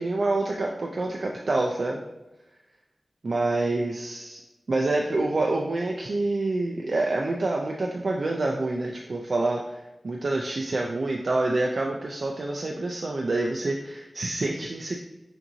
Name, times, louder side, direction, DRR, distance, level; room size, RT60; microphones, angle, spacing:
voice 1, 0.0-2.0 3.2-4.4 4.7-9.8 10.0-15.0, right 2 dB, 65° right, 0 dB, 0.4 m, -27 dB
5.6 x 2.6 x 2.7 m, 1.0 s
wide cardioid pair, 55°, 0 cm